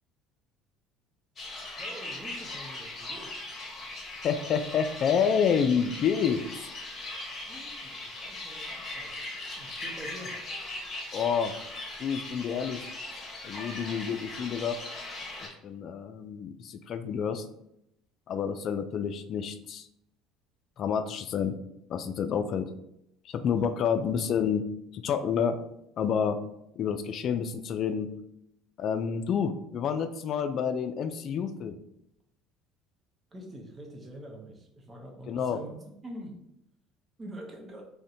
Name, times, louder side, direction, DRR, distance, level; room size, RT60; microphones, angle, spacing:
sound 1, 1.4-15.5, left 2 dB, 35° left, 1.0 m, -39 dB
voice 1, 1.8-3.4 7.5-9.3 9.6-10.4 23.4-23.8 33.3-35.8 36.0-36.3 37.2-37.9, right 1 dB, 25° right, 0 dB, 0.8 m, -45 dB
voice 2, 4.2-6.4 11.1-11.5 12.0-14.8 15.4-17.5 18.3-19.9 20.8-21.5 21.9-22.7 23.2-24.7 24.9-25.6 26.0-26.4 26.8-28.1 28.8-31.8 35.3-35.6, left 7 dB, 50° left, 9 dB, 0.3 m, -29 dB
2.6 x 2.1 x 3.7 m, 0.79 s
supercardioid pair, 95°, 0 cm